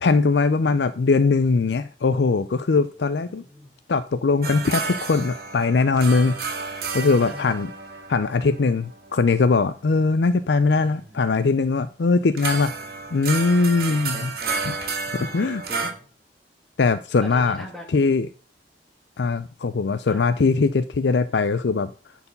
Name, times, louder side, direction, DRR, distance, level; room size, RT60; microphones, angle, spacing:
voice 1, 0.0-3.4 3.9-6.4 6.9-7.7 8.1-14.3 14.7-14.8 15.1-15.6 16.8-17.6 17.9-18.3 19.2-21.9, left 4 dB, 75° left, 12 dB, 0.5 m, -21 dB
voice 2, 3.2-3.7 7.2-7.6 10.8-11.3 12.2-13.3 13.9-14.7 15.4-16.1 17.2-17.9 20.1-20.2, right 1 dB, 5° left, 1 dB, 2.0 m, -42 dB
Japan Taishogoto Amateur Improvisation, 4.4-9.8 12.4-15.9, right 4 dB, 60° right, 2.1 m, -31 dB
10.5 x 4.7 x 5.4 m, 0.38 s
head